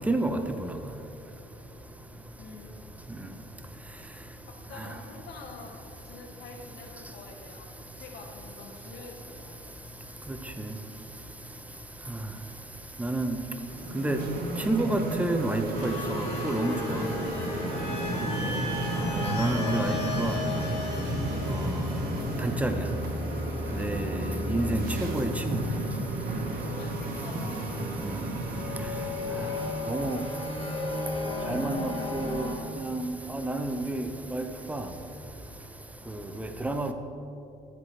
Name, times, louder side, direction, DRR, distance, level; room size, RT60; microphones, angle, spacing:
voice 1, 0.1-0.4 13.0-13.4 13.9-14.2 14.7-17.1 18.2-18.3 19.2-20.4 22.4-22.7 23.8-24.1 24.5-24.8 25.1-25.6 29.9-30.2 31.5-32.5 32.8-34.8 36.4-36.9, right 2 dB, 10° right, 6 dB, 0.6 m, -29 dB
voice 2, 2.4-2.7 4.4-5.8 6.0-9.6 18.1-19.2 26.6-27.9, left 4 dB, 75° left, 2 dB, 1.0 m, -46 dB
sound 1, 13.6-30.3, right 1 dB, 60° right, 1.2 m, -33 dB
sound 2, 15.7-27.1 28.3-32.6, left 2 dB, 35° left, 1.8 m, -34 dB
13.0 x 4.8 x 4.4 m, 2.7 s
cardioid pair, 110°, 17 cm